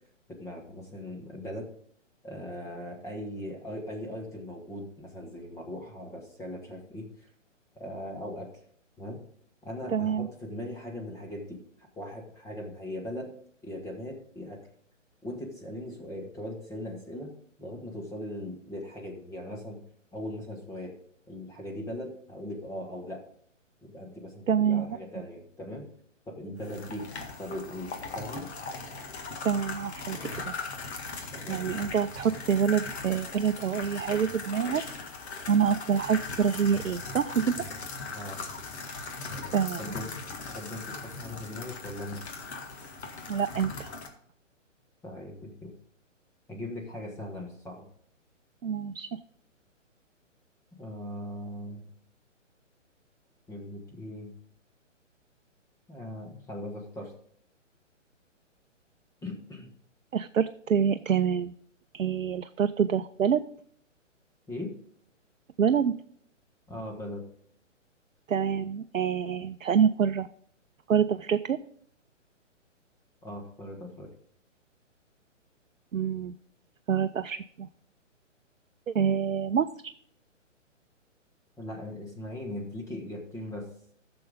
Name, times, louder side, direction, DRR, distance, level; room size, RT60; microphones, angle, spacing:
voice 1, 0.3-1.7 2.2-7.3 7.7-8.5 9.0-9.2 9.6-13.3 13.6-14.6 15.2-17.3 17.6-19.8 20.1-20.9 21.3-23.2 23.8-25.9 26.3-27.1 27.4-28.5 31.3-31.6 38.1-38.4 39.8-40.1 40.5-42.2 45.0-45.7 46.5-47.9 50.8-51.9 53.5-54.3 55.9-57.1 59.2-59.7 64.5-64.7 66.7-67.2 73.2-74.1 81.6-83.7, left 1 dB, 10° left, -1 dB, 1.3 m, -39 dB
voice 2, 9.9-10.3 24.5-25.0 29.4-30.6 31.5-34.8 35.5-37.6 39.5-39.9 43.3-43.9 48.6-49.2 60.1-61.5 61.9-63.4 65.6-66.0 68.3-70.3 70.9-71.6 75.9-76.4 76.9-77.7 78.9-79.7, right 7 dB, 85° right, 9 dB, 0.6 m, -26 dB
sound 1, 26.6-44.1, left 3 dB, 55° left, 1.9 m, -39 dB
14.0 x 6.9 x 3.8 m, 0.63 s
figure-of-eight pair, 135°, 38 cm